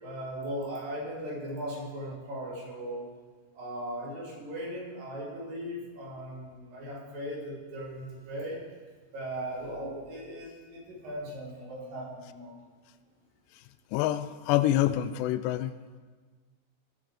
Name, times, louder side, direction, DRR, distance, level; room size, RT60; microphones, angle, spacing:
voice 1, 0.0-3.1 3.5-8.6 9.1-12.6, equal, 55° right, -4 dB, 4.4 m, -38 dB
voice 2, 13.9-15.7, left 13 dB, 85° left, 14 dB, 2.7 m, -26 dB
18.0 x 8.2 x 5.0 m, 1.4 s
omnidirectional pair, 4.9 m